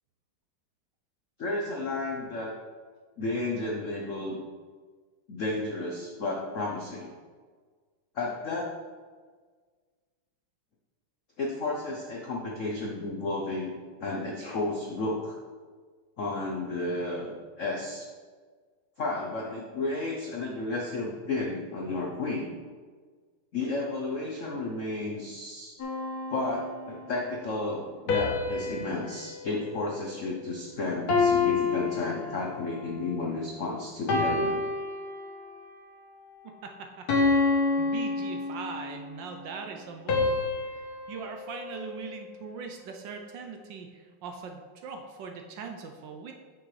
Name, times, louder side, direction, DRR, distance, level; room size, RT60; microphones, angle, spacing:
voice 1, 1.4-2.6 3.2-4.4 5.3-7.1 8.1-8.8 11.4-13.7 14.0-15.4 16.2-18.1 19.0-22.5 23.5-25.7 26.3-34.6, left 2 dB, 70° left, -1 dB, 0.7 m, -32 dB
sound 1, 25.8-27.1 28.1-30.6 31.1-32.8 33.4-33.6 34.1-35.6 36.1-36.4 37.1-39.0 40.1-42.5, left 3 dB, 55° left, 1.3 m, -29 dB
voice 2, 36.6-37.3 37.8-46.3, right 5 dB, 70° right, 4 dB, 1.2 m, -41 dB
8.6 x 6.2 x 3.2 m, 1.5 s
omnidirectional pair, 2.4 m